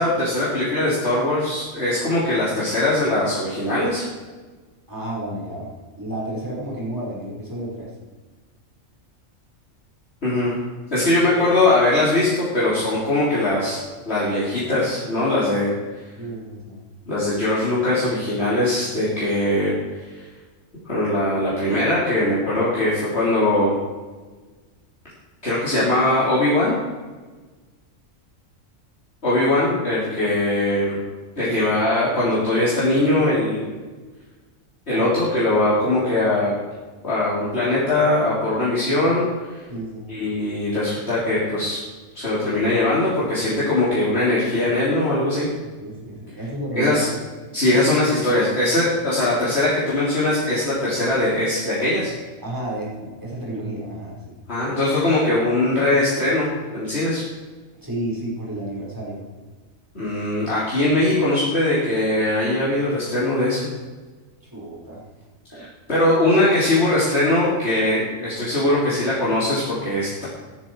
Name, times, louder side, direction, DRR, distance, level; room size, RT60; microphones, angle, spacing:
voice 1, 0.0-4.0 10.2-10.6 10.9-13.8 14.1-15.7 17.1-19.7 20.2-20.3 20.9-23.7 25.4-26.8 29.2-31.0 31.4-33.8 34.9-36.5 37.0-39.6 40.1-41.8 42.2-45.5 46.7-47.1 47.5-52.1 54.5-57.2 59.9-63.7 65.9-70.3, left 1 dB, 50° left, -9 dB, 3.8 m, -21 dB
voice 2, 4.9-7.9 16.2-16.8 31.4-31.6 34.9-35.2 39.7-40.1 45.8-47.0 47.7-47.8 52.4-54.4 57.8-59.3 64.4-65.0 65.5-66.0, right 1 dB, 15° right, -6 dB, 5.2 m, -31 dB
15.5 x 11.5 x 4.8 m, 1.3 s
omnidirectional pair, 1.4 m